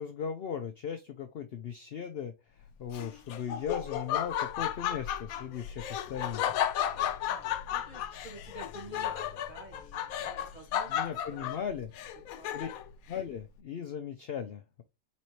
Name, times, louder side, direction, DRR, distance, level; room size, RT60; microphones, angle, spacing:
voice 1, 0.0-2.3 2.8-6.4 10.9-11.9 12.5-12.7 13.1-14.8, left 7 dB, 60° left, 7 dB, 0.7 m, -37 dB
Laughter, 2.9-12.9, left 10 dB, 85° left, 1.0 m, -34 dB
voice 2, 7.3-11.7 12.3-12.8, right 2 dB, 30° right, -1 dB, 2.3 m, -51 dB
4.2 x 4.2 x 3.0 m, 0.25 s
omnidirectional pair, 1.5 m